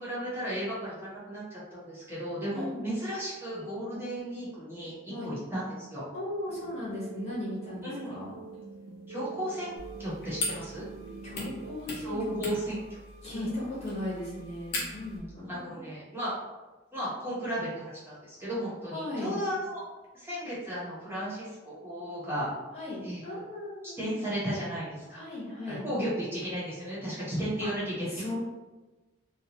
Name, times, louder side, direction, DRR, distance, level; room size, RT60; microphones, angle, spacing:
voice 1, 0.0-6.0 7.8-8.1 9.1-9.7 10.0-10.9 12.0-12.8 13.3-13.5 15.5-16.3 16.9-19.8 20.1-22.5 23.0-23.2 24.0-25.2 25.7-28.0, equal, 10° right, -9 dB, 1.0 m, -34 dB
voice 2, 2.5-2.9 5.1-5.3 6.1-8.4 11.2-12.4 13.2-15.8 18.9-19.4 22.7-24.2 25.1-25.9 27.6-27.7 28.1-28.4, left 1 dB, 35° left, -8 dB, 1.2 m, -37 dB
sound 1, 6.5-11.8, right 5 dB, 70° right, 0.4 m, -45 dB
sound 2, 9.8-15.2, left 2 dB, 55° left, 0.8 m, -40 dB
2.7 x 2.3 x 2.9 m, 1.2 s
head